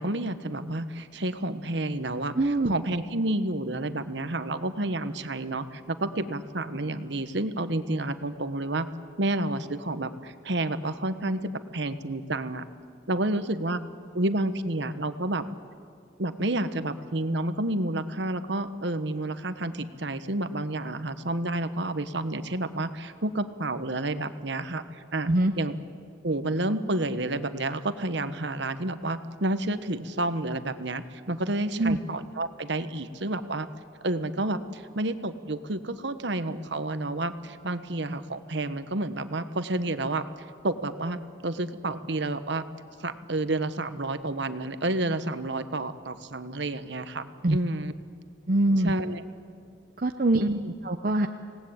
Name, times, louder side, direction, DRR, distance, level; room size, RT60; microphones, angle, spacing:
voice 1, 0.0-8.9 9.2-12.6 13.1-13.8 14.1-15.4 16.2-25.3 25.6-25.7 26.2-33.7 34.0-40.2 40.6-42.6 43.0-47.9 48.8-49.2 50.4-50.7, right 2 dB, 65° right, 10 dB, 1.2 m, -30 dB
voice 2, 2.4-2.7 25.3-25.5 31.8-32.0 47.4-47.6 48.5-48.9 50.0-50.4 50.8-51.3, right 2 dB, 45° right, 5 dB, 0.8 m, -23 dB
27.0 x 18.5 x 8.7 m, 2.3 s
head